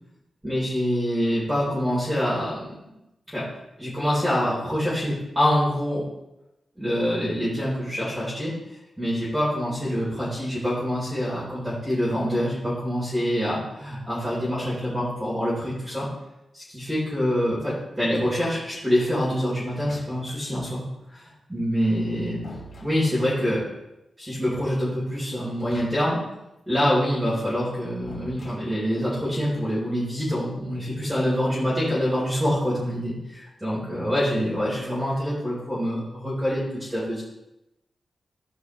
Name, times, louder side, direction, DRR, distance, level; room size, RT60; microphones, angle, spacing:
voice 1, 0.4-2.8 3.3-3.5 3.8-6.0 6.8-8.5 9.0-16.1 16.5-20.8 21.1-22.4 22.8-23.6 24.2-26.2 26.7-37.2, equal, 10° right, -9 dB, 3.7 m, -25 dB
sound 1, 19.6-20.5 21.8-23.6 25.4-26.3 26.5-26.6 28.1-29.2, left 1 dB, 45° left, 3.7 m, -45 dB
15.0 x 5.6 x 3.2 m, 0.91 s
wide cardioid pair, 120°, 0 cm